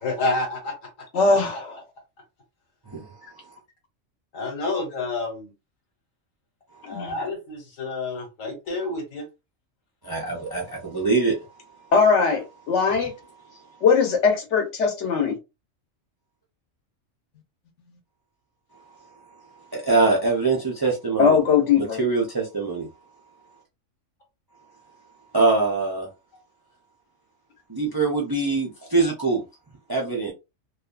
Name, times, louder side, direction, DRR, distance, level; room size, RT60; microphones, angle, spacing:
voice 1, 0.0-1.1 4.3-5.5 6.9-9.3, left 2 dB, 90° left, 1.5 m, -29 dB
voice 2, 1.1-1.8 6.9-7.1 11.9-13.1 13.8-15.4 21.2-22.0, left 5 dB, 65° left, 1.1 m, -20 dB
voice 3, 10.0-11.4 19.7-21.4 21.8-22.9 25.3-26.1 27.7-29.4 29.9-30.3, right 3 dB, 30° right, 0.4 m, -23 dB
2.6 x 2.4 x 2.3 m
omnidirectional pair, 1.3 m